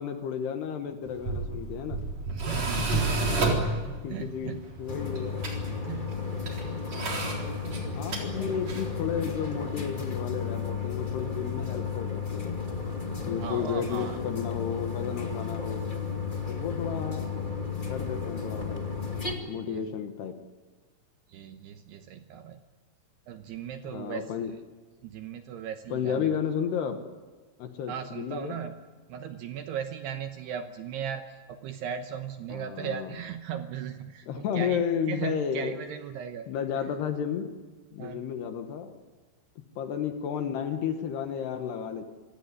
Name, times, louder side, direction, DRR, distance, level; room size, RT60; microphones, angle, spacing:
voice 1, 0.0-2.0 2.8-3.0 4.0-5.4 8.0-12.6 13.3-15.9 16.5-17.3 17.9-18.9 19.5-20.3 23.8-24.5 25.9-27.0 27.6-28.6 32.5-33.1 34.3-35.8 36.5-37.5 37.9-38.9 39.8-42.0, left 8 dB, 65° left, 7 dB, 3.0 m, -32 dB
Tools, 1.0-9.0, right 3 dB, 35° right, 4.5 m, -32 dB
voice 2, 2.3-2.9 3.3-4.6 5.8-6.4 8.3-8.5 13.4-14.2 19.6-19.8 21.3-22.6 23.3-24.6 25.0-26.4 27.9-28.8 29.1-36.5 36.8-36.9 38.0-38.3, right 8 dB, 75° right, 7 dB, 2.6 m, -38 dB
sound 1, 4.9-19.3, left 5 dB, 50° left, 0.5 m, -33 dB
26.5 x 17.0 x 9.6 m, 1.3 s
omnidirectional pair, 5.7 m